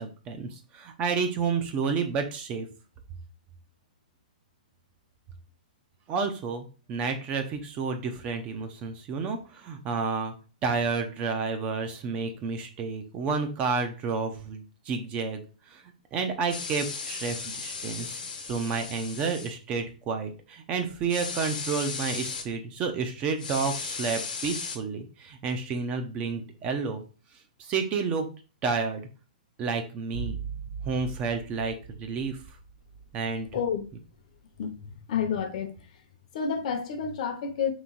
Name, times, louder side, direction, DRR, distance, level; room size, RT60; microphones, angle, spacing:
voice 1, 0.0-2.7 6.1-10.3 10.6-15.4 15.7-15.8 16.1-27.0 27.6-28.3 28.6-29.0 29.6-30.4 30.8-32.4 33.1-33.5, right 5 dB, 25° right, 0.6 m, -30 dB
sound 1, 16.5-19.5 21.1-22.4 23.4-24.8, left 5 dB, 75° left, 1.0 m, -36 dB
sound 2, 30.1-34.4 34.6-34.7, right 6 dB, 60° right, 0.9 m, -40 dB
voice 2, 33.5-33.9 34.6-35.8 36.3-37.7, left 7 dB, 55° left, 0.8 m, -30 dB
3.4 x 3.1 x 3.9 m
hypercardioid pair, 140°, 5 cm